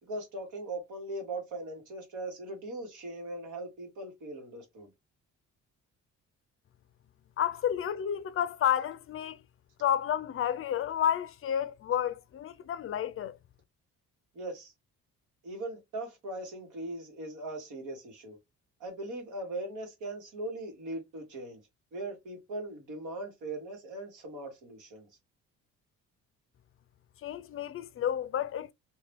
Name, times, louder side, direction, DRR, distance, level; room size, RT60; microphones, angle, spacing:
voice 1, 0.0-4.9 14.3-14.7 15.4-18.4 18.8-21.6 21.9-25.1, right 2 dB, 85° right, 1.6 m, -40 dB
voice 2, 7.4-9.4 9.8-13.4 27.2-28.7, left 10 dB, 45° left, 0.4 m, -31 dB
2.8 x 2.6 x 3.4 m
cardioid pair, 90°, 30 cm